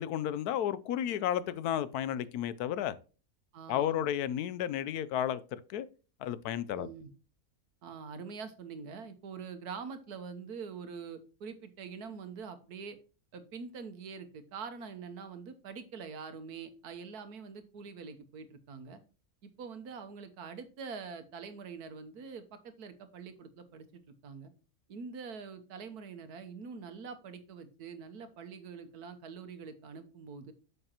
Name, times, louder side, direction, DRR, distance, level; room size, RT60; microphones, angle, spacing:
voice 1, 0.0-2.9 3.7-5.9 6.2-6.9, left 10 dB, 85° left, 1.1 m, -32 dB
voice 2, 3.5-4.0 6.7-7.1 7.8-13.0 13.3-19.0 19.4-24.5 24.9-30.5, right 5 dB, 85° right, 1.6 m, -45 dB
8.8 x 6.6 x 2.9 m
omnidirectional pair, 1.6 m